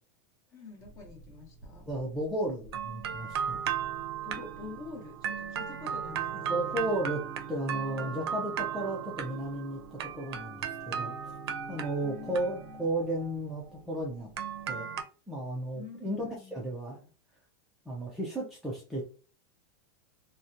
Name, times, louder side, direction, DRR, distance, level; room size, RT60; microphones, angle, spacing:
voice 1, 0.5-1.9 4.2-7.0 12.0-12.8 15.7-16.7, left 4 dB, 25° left, 2 dB, 0.7 m, -47 dB
sound 1, 0.8-2.2 2.6-15.0, right 8 dB, 85° right, 0.5 m, -36 dB
voice 2, 1.9-3.6 6.5-7.2 7.5-11.4 11.7-14.3 14.7-14.9 15.3-17.1 17.9-19.0, right 1 dB, ahead, -4 dB, 0.3 m, -34 dB
2.7 x 2.1 x 2.4 m, 0.36 s
supercardioid pair, 165°, 13 cm